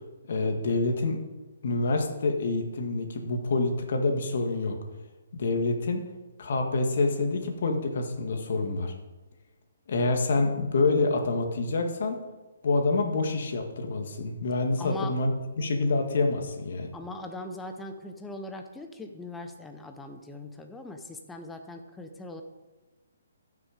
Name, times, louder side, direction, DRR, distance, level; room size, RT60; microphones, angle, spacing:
voice 1, 0.3-1.2 1.6-4.8 5.3-6.0 6.4-8.9 9.9-12.2 12.6-16.9, left 3 dB, 55° left, 4 dB, 1.8 m, -27 dB
voice 2, 14.8-15.2 16.9-22.4, left 2 dB, 5° left, 5 dB, 0.7 m, -40 dB
14.0 x 6.3 x 5.1 m, 1.2 s
hypercardioid pair, 160°, 0 cm